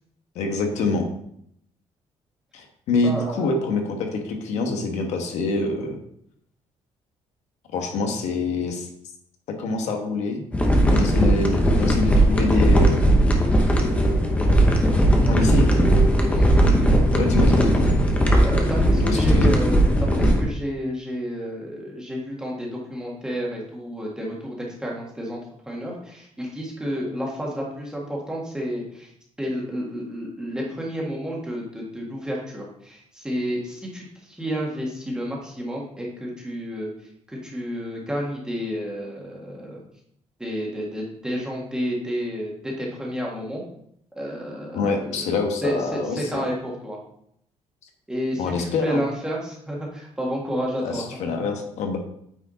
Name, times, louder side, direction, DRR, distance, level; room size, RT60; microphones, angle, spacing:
voice 1, 0.3-1.1 2.5-6.0 7.7-8.9 9.6-10.4 10.9-13.1 15.3-15.7 17.1-17.9 19.0-19.5 44.7-46.4 48.4-49.0 50.8-52.0, left 3 dB, 75° left, 4 dB, 1.2 m, -26 dB
voice 2, 3.0-3.5 14.8-15.8 16.2-16.5 16.8-17.0 18.4-25.4 25.7-29.1 29.4-36.9 37.3-39.8 40.4-43.6 44.1-47.0 48.1-51.5, equal, 5° right, -3 dB, 1.6 m, -31 dB
sound 1, 10.5-20.4, right 1 dB, 10° left, 0.9 m, -18 dB
8.8 x 4.8 x 4.0 m, 0.70 s
cardioid pair, 180°, 12 cm